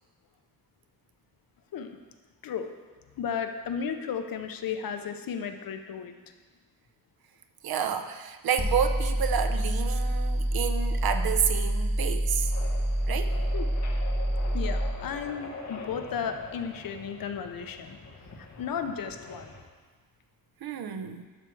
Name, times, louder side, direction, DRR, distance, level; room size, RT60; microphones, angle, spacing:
voice 1, 3.2-6.2 13.5-13.7 14.5-18.0 18.4-19.5, left 7 dB, 70° left, 7 dB, 0.8 m, -34 dB
voice 2, 7.6-12.5 13.1-13.4 20.6-21.3, right 8 dB, 80° right, 8 dB, 0.8 m, -30 dB
sound 1, 8.6-15.0, equal, 5° right, 0.8 m, -27 dB
sound 2, 12.4-19.6, left 3 dB, 50° left, 1.3 m, -44 dB
12.0 x 4.6 x 6.3 m, 1.4 s
wide cardioid pair, 170°, 36 cm